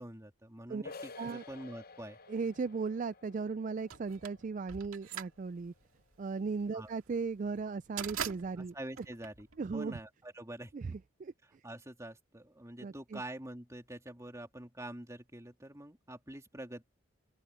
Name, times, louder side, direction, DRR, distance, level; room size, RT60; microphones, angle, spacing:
voice 1, 0.0-2.2 6.7-6.9 8.6-9.5 9.7-11.0 11.6-16.8, right 1 dB, 15° right, 3.2 m, -46 dB
sound 1, 0.8-6.3, left 4 dB, 45° left, 0.8 m, -53 dB
voice 2, 2.3-5.7 6.2-9.1 9.6-10.0 10.7-11.6 12.8-13.2, right 4 dB, 35° right, 0.3 m, -37 dB
sound 2, 3.9-10.0, right 8 dB, 90° right, 2.1 m, -43 dB
open air
head